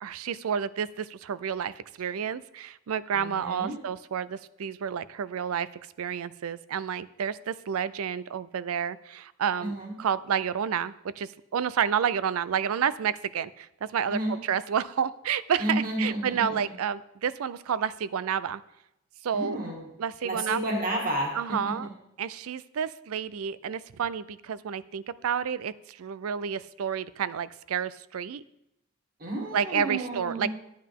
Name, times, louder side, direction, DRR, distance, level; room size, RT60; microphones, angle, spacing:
voice 1, 0.0-5.7 6.0-18.6 19.2-19.6 20.0-20.6 21.3-21.9 22.2-28.4 29.5-30.5, right 7 dB, 90° right, 16 dB, 0.4 m, -30 dB
voice 2, 3.1-3.8 9.6-9.9 14.1-14.4 15.6-16.5 19.3-19.9 20.2-21.9 29.2-30.5, right 1 dB, 40° right, -1 dB, 2.2 m, -31 dB
12.0 x 8.7 x 3.6 m, 0.85 s
head